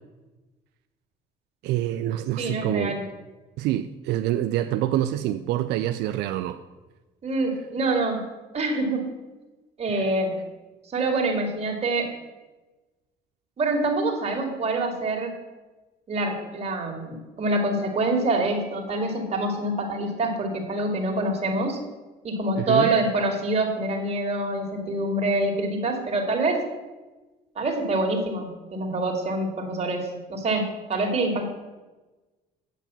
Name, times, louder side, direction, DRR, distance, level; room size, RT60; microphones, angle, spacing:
voice 1, 1.6-3.0 3.6-6.6 9.9-10.1 22.6-22.9, right 13 dB, 85° right, 0.5 m, -26 dB
voice 2, 2.4-3.0 7.2-8.2 8.5-9.1 9.8-10.4 10.9-12.1 13.6-15.3 16.1-21.8 22.2-26.6 27.6-31.5, right 2 dB, 40° right, 2.3 m, -26 dB
8.6 x 5.8 x 6.9 m
cardioid pair, 110°, 17 cm